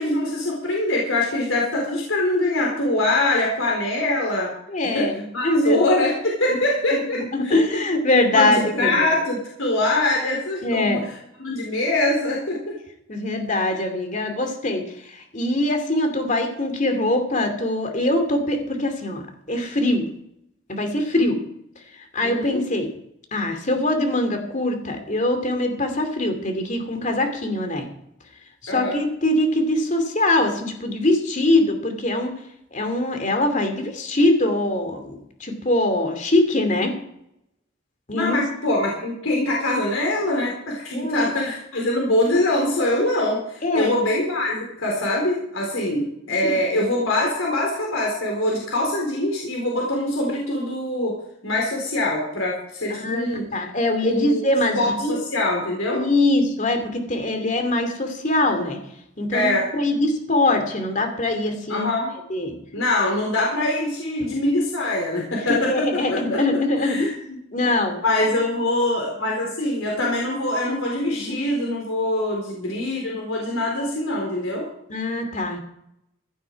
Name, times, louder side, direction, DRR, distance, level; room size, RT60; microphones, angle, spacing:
voice 1, 0.0-4.5 4.9-7.5 8.3-11.0 11.4-12.8 22.2-22.6 28.7-29.0 38.1-51.1 51.4-53.4 54.0-54.4 54.7-56.0 59.3-59.7 61.7-62.1 62.7-66.4 66.8-67.4 68.0-74.7, left 1 dB, 80° left, -2 dB, 4.2 m, -23 dB
voice 2, 4.7-5.8 6.5-6.6 6.9-9.1 10.6-11.0 13.1-19.2 19.5-20.1 20.7-21.4 22.1-22.9 23.3-27.9 28.6-32.3 32.7-36.9 38.1-38.4 40.9-41.3 43.6-43.9 46.4-46.6 52.9-55.2 55.9-58.8 59.2-61.9 62.3-62.6 65.5-67.1 67.5-68.0 71.1-71.4 74.9-75.6, left 1 dB, 35° left, 6 dB, 2.6 m, -23 dB
16.0 x 11.0 x 4.8 m, 0.77 s
head